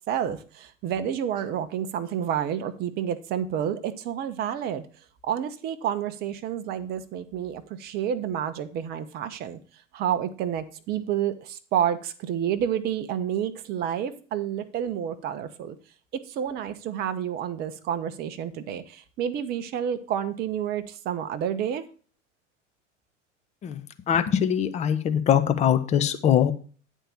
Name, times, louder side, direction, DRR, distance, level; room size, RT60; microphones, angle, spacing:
voice 1, 0.0-4.8 5.2-9.6 9.9-15.8 16.3-21.8, right 9 dB, 25° right, 9 dB, 0.7 m, -29 dB
voice 2, 23.6-26.5, left 9 dB, 20° left, 10 dB, 0.6 m, -22 dB
10.0 x 3.6 x 6.9 m, 0.40 s
figure-of-eight pair, 85°, 37 cm